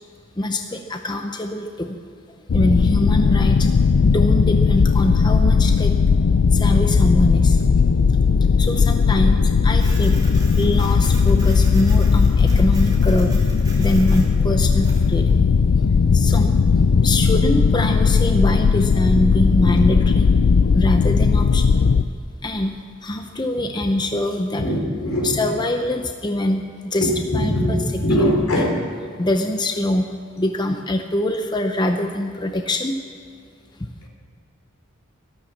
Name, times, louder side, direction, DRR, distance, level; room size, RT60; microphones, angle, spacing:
voice 1, 0.4-2.0 2.5-3.7 4.0-5.9 6.5-7.6 8.6-10.1 10.6-13.3 13.8-15.5 16.1-16.6 17.0-20.3 20.7-21.9 22.4-24.6 25.2-27.8 28.2-28.7 29.2-30.1 30.4-32.9, left 1 dB, 20° left, 5 dB, 0.7 m, -23 dB
sound 1, 2.5-22.0, left 5 dB, 65° left, 0.4 m, -17 dB
Printer, 9.7-15.1, right 2 dB, 20° right, 2.6 m, -41 dB
voice 2, 24.6-25.6 27.0-28.8 29.1-29.2, equal, 85° left, 0 dB, 3.6 m, -21 dB
13.0 x 12.0 x 7.3 m, 2.4 s
head